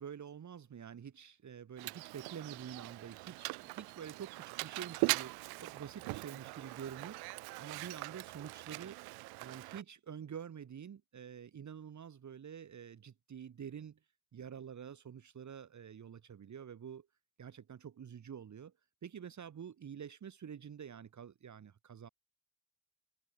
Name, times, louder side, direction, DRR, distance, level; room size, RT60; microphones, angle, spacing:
voice 1, 0.0-7.2 7.6-9.1 9.4-14.0 14.3-17.1 17.4-18.7 19.0-22.1, right 8 dB, 45° right, 3.2 m, -48 dB
Mechanisms, 1.8-9.8, right 25 dB, 65° right, 0.6 m, -41 dB
hypercardioid pair, 55°, 41 cm